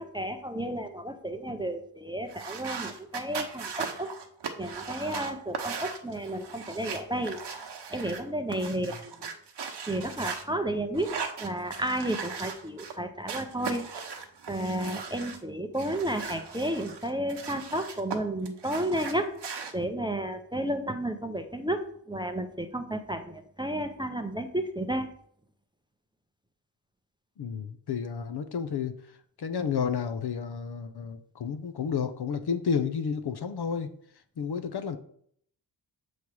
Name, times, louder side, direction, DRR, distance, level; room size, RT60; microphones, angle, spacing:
voice 1, 0.0-4.1 4.6-7.4 7.9-9.1 9.9-13.8 14.5-19.3 19.7-25.1, right 1 dB, 10° right, 6 dB, 0.6 m, -32 dB
sound 1, 2.3-10.4 10.9-12.9 13.3-15.4 15.8-18.2 18.4-19.7, right 6 dB, 65° right, 1.0 m, -38 dB
voice 2, 27.4-28.9 29.4-33.9 34.4-35.0, left 6 dB, 60° left, 10 dB, 0.7 m, -31 dB
7.0 x 3.2 x 6.0 m, 0.64 s
wide cardioid pair, 100°, 45 cm